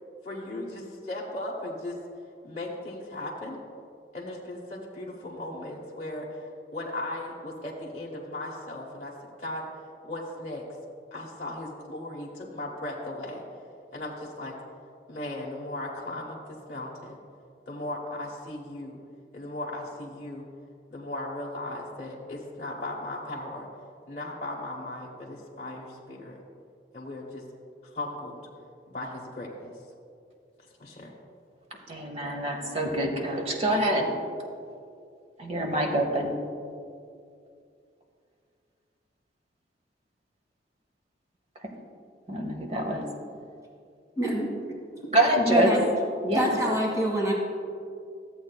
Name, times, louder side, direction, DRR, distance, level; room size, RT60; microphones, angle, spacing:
voice 1, 0.2-2.0 2.4-3.6 4.1-9.1 9.4-9.7 10.0-10.6 11.1-13.4 13.9-14.5 15.1-17.2 17.7-19.0 19.3-20.4 20.9-23.7 24.1-26.4 26.9-27.4 27.9-28.4 28.9-29.7 30.8-31.1, left 1 dB, 40° left, -5 dB, 0.9 m, -37 dB
voice 2, 31.9-34.1 35.4-36.3 41.6-41.7 42.3-43.0 45.1-45.7 46.2-46.6, right 1 dB, 35° right, 2 dB, 1.0 m, -25 dB
voice 3, 44.2-44.5 45.0-45.1 45.5-45.8 46.3-47.3, right 1 dB, 20° right, -2 dB, 1.7 m, -26 dB
14.0 x 7.8 x 2.2 m, 2.4 s
head